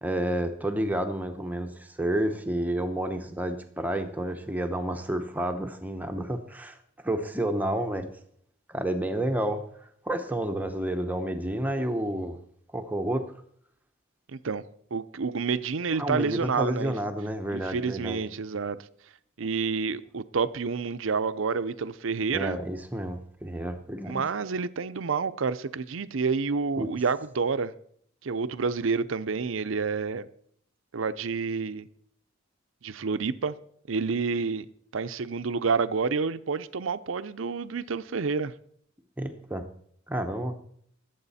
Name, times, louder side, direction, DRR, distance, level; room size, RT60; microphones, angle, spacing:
voice 1, 0.0-6.8 7.0-8.1 8.7-9.6 10.0-12.4 12.7-13.2 16.0-18.2 22.3-24.2 26.8-26.9 39.2-39.7 40.1-40.6, right 1 dB, 10° right, 0.8 m, -30 dB
voice 2, 14.3-14.6 14.9-16.9 17.5-18.8 19.4-22.6 24.1-27.7 28.2-30.3 30.9-31.9 32.8-33.5 33.9-34.7 34.9-38.5, right 5 dB, 70° right, 0.6 m, -29 dB
20.0 x 8.0 x 4.2 m
head